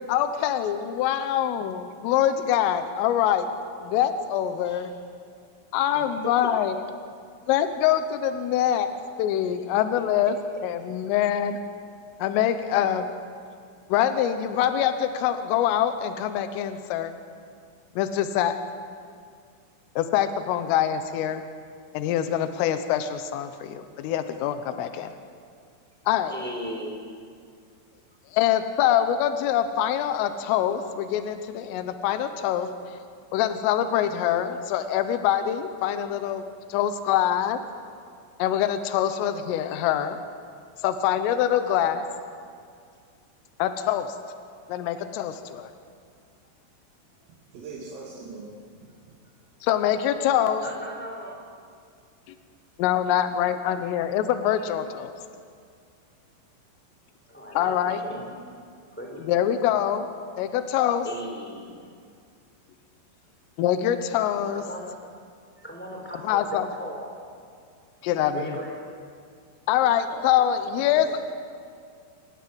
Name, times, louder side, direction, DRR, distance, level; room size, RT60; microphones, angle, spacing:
voice 1, 0.1-3.5 3.8-4.9 5.7-6.8 7.5-8.9 9.2-10.4 10.6-11.6 12.2-13.1 13.9-17.1 18.0-18.6 20.0-21.4 21.9-25.1 26.1-26.3 28.3-32.7 33.3-36.4 36.7-37.6 38.4-40.2 40.8-42.0 43.6-44.1 44.7-45.7 49.6-50.6 52.8-55.1 57.6-58.0 59.3-60.1 60.4-61.1 63.6-64.6 66.2-66.7 68.0-68.6 69.7-71.3, left 10 dB, 80° left, 9 dB, 3.7 m, -24 dB
voice 2, 6.2-6.5 26.3-27.3 50.6-51.4 57.3-58.3 58.9-59.2 61.0-61.8 64.5-64.9 65.6-67.2 68.3-69.1 70.1-70.2, equal, ahead, 0 dB, 3.6 m, -37 dB
voice 3, 47.5-48.9 70.9-71.1, right 4 dB, 85° right, -5 dB, 5.3 m, -41 dB
28.0 x 18.0 x 7.8 m, 2.2 s
omnidirectional pair, 5.8 m